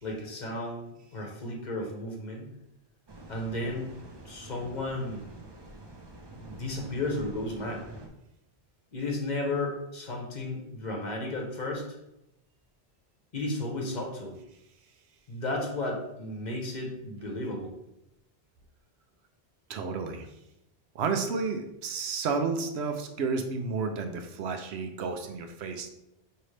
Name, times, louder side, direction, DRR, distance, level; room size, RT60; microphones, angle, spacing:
voice 1, 0.0-2.5 3.3-3.9 4.2-5.3 6.3-7.9 8.9-12.0 13.3-14.4 15.3-17.7, left 2 dB, 45° left, 0 dB, 0.9 m, -33 dB
sound 1, 3.1-8.1, right 2 dB, 45° right, 0.3 m, -47 dB
voice 2, 19.7-20.3 20.9-25.9, right 4 dB, 80° right, 6 dB, 0.8 m, -31 dB
5.2 x 2.8 x 3.2 m, 0.85 s
omnidirectional pair, 1.1 m